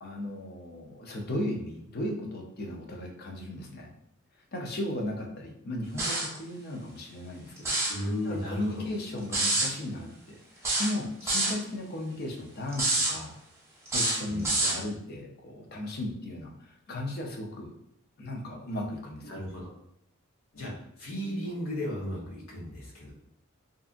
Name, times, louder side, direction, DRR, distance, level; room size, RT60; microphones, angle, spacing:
voice 1, 0.0-3.9 4.5-13.3 13.9-17.7 18.2-19.4, left 1 dB, 50° left, 0 dB, 0.5 m, -36 dB
sound 1, 6.0-6.4 7.6-8.0 9.3-9.7 10.6-11.6 12.7-13.1 13.9-14.8, right 2 dB, 15° right, 0.6 m, -27 dB
voice 2, 7.9-8.9 14.2-14.6 19.2-19.7 20.5-20.7 21.0-23.1, left 1 dB, 80° left, -4 dB, 0.9 m, -35 dB
2.6 x 2.4 x 2.4 m, 0.77 s
head